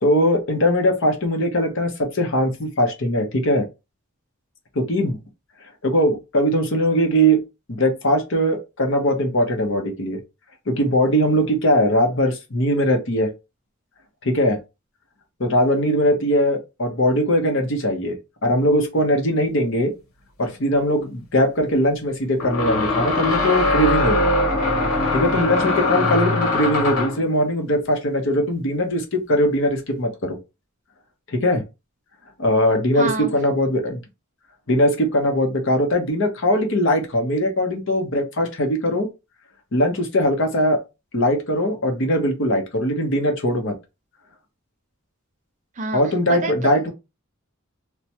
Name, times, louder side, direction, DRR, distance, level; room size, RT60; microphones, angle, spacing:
voice 1, 0.0-3.6 4.7-5.2 5.8-7.4 7.7-10.2 10.7-13.3 14.2-14.6 15.4-18.1 18.4-19.9 20.4-24.3 25.1-30.4 31.3-31.6 32.4-34.0 34.7-39.1 39.7-40.8 41.1-43.7 45.9-46.9, equal, 60° left, 0.8 m, -20 dB
sound 1, 20.4-20.5 22.4-27.2, left 2 dB, 80° left, 1.2 m, -21 dB
voice 2, 33.0-33.3 45.8-46.0 46.3-46.9, right 3 dB, 35° right, 0.6 m, -28 dB
3.1 x 2.2 x 2.9 m
head